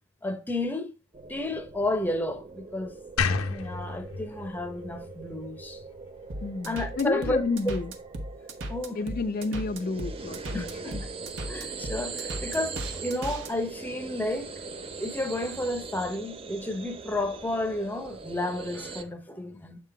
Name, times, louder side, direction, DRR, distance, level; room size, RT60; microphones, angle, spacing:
voice 1, 0.2-0.9 1.3-2.9 3.3-5.8 6.6-7.8 8.7-9.0 10.5-11.0 11.5-14.5 15.0-19.8, left 1 dB, 10° left, 0.7 m, -31 dB
sound 1, 1.1-19.0, right 4 dB, 25° right, 0.5 m, -41 dB
sound 2, 3.2-6.3, left 5 dB, 90° left, 0.7 m, -32 dB
sound 3, 6.3-13.5, right 1 dB, 65° right, 1.1 m, -36 dB
voice 2, 6.4-7.9 8.9-10.8, left 3 dB, 45° left, 0.4 m, -30 dB
7.3 x 3.7 x 4.6 m
head